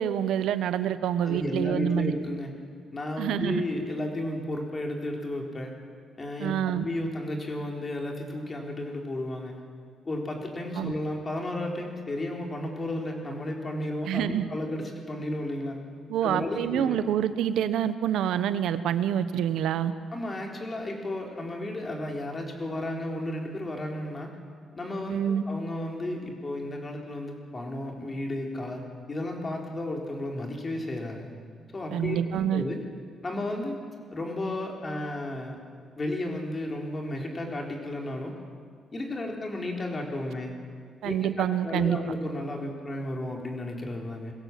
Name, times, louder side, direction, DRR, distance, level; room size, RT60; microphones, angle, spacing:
voice 1, 0.0-2.1 3.2-3.6 6.4-6.9 10.8-10.9 14.1-14.4 16.1-19.9 25.1-25.4 31.9-32.6 41.0-42.0, right 10 dB, 80° right, 12 dB, 1.0 m, -27 dB
voice 2, 1.2-2.5 2.9-5.7 6.2-9.6 10.0-15.8 16.2-17.0 20.1-24.4 24.7-31.3 31.7-32.8 33.2-33.8 34.1-35.6 36.0-38.3 38.9-40.6 41.0-44.3, left 1 dB, 30° left, 1 dB, 4.1 m, -33 dB
21.5 x 16.5 x 7.6 m, 2.1 s
cardioid pair, 90°, 0 cm